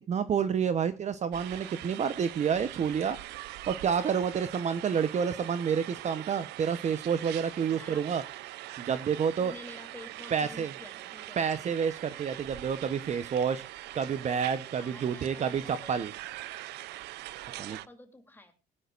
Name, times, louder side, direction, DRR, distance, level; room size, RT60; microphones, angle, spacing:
voice 1, 0.1-3.2 3.7-8.2 8.8-9.5 10.3-10.7 11.4-13.6 13.9-16.1 17.6-17.8, right 7 dB, 45° right, 12 dB, 1.0 m, -29 dB
sound 1, 1.3-17.9, right 16 dB, 80° right, 0.6 m, -43 dB
voice 2, 7.7-8.1 9.4-11.4 14.8-16.0 17.5-18.5, left 1 dB, 10° left, 5 dB, 3.1 m, -50 dB
21.5 x 10.0 x 2.5 m, 0.26 s
cardioid pair, 110°, 17 cm